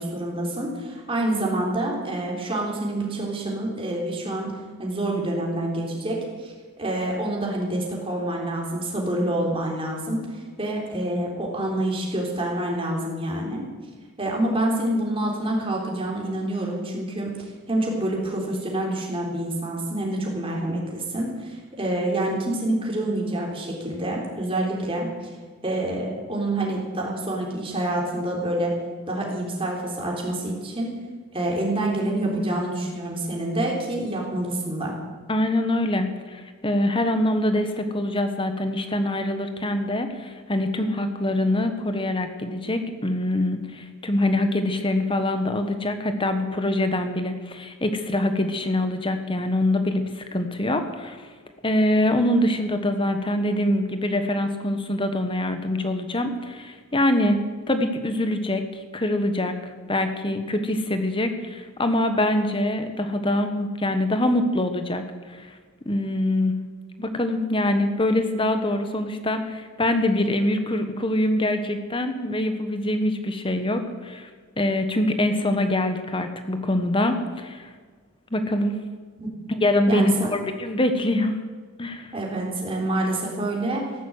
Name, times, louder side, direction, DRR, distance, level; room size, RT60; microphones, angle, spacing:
voice 1, 0.0-4.5 4.8-13.7 14.2-17.3 17.7-25.1 25.6-28.7 29.1-30.9 31.3-35.0 79.2-79.3 79.9-80.3 82.1-83.8, right 1 dB, 25° right, -1 dB, 3.7 m, -27 dB
voice 2, 35.3-51.3 51.6-57.4 57.7-58.6 58.9-59.6 59.9-65.0 65.3-65.5 65.8-66.6 67.0-74.3 74.6-77.7 78.3-78.8 79.6-81.4 81.8-82.1, left 1 dB, 25° left, 7 dB, 1.3 m, -24 dB
14.5 x 11.5 x 8.0 m, 1.5 s
head